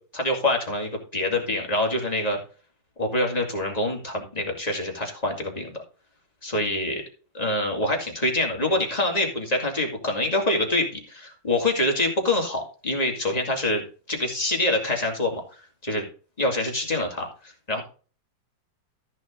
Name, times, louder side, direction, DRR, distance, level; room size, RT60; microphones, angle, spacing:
voice 1, 0.1-2.4 3.0-5.8 6.4-7.0 7.3-13.8 14.1-16.1 16.4-17.8, left 1 dB, 20° left, 1 dB, 2.7 m, -25 dB
14.0 x 6.4 x 3.8 m, 0.38 s
omnidirectional pair, 2.0 m